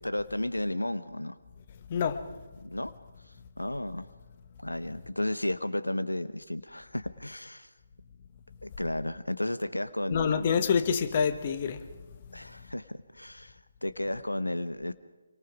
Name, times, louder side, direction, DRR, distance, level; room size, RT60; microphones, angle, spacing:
voice 1, 0.0-1.4 2.6-2.9 3.6-4.1 4.6-7.7 8.6-10.5 12.3-14.9, left 1 dB, 90° left, 0.9 m, -33 dB
voice 2, 1.9-2.2 10.1-11.8, left 6 dB, 35° left, 1.5 m, -26 dB
26.5 x 24.0 x 5.1 m
figure-of-eight pair, 145°, 0 cm